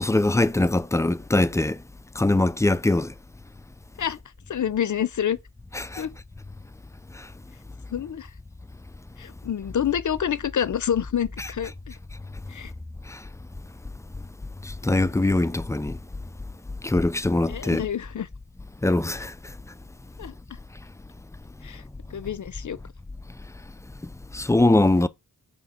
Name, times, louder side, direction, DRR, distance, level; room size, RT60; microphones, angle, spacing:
voice 1, 0.0-1.8 2.2-3.1 5.7-6.0 7.2-7.3 13.1-13.2 14.6-16.0 16.8-17.8 18.8-19.3 24.3-25.1, left 2 dB, 10° left, 0.4 m, -22 dB
voice 2, 4.5-5.4 6.0-6.1 7.9-8.3 9.2-11.9 12.5-12.7 17.5-18.3 20.2-20.3 21.6-21.8 22.1-22.8, left 9 dB, 55° left, 0.6 m, -27 dB
5.8 x 4.3 x 4.3 m
cardioid pair, 50°, 37 cm